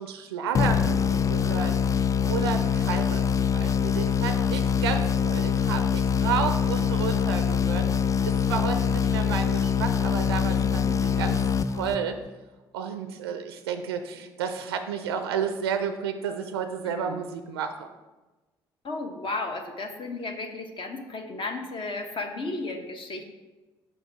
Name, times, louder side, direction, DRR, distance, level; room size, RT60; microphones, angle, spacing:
voice 1, 0.0-1.7 2.2-7.8 8.2-11.4 11.7-12.2 12.7-17.9, right 7 dB, 80° right, 8 dB, 0.4 m, -31 dB
sound 1, 0.5-12.3, left 7 dB, 25° left, 0.3 m, -24 dB
voice 2, 10.6-11.0 16.8-17.2 18.8-23.2, left 3 dB, 40° left, 5 dB, 1.0 m, -34 dB
5.7 x 5.4 x 4.5 m, 1.2 s
figure-of-eight pair, 50°, 13 cm